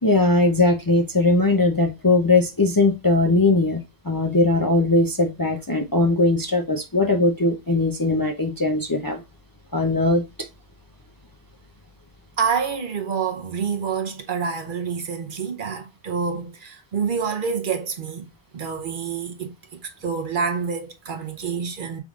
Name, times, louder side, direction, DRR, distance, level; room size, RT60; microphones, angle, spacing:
voice 1, 0.0-9.2 9.7-10.2, left 2 dB, 25° left, 0.5 m, -20 dB
voice 2, 12.4-18.3 18.5-22.0, right 6 dB, 60° right, 0.9 m, -27 dB
4.9 x 3.7 x 2.4 m
omnidirectional pair, 1.0 m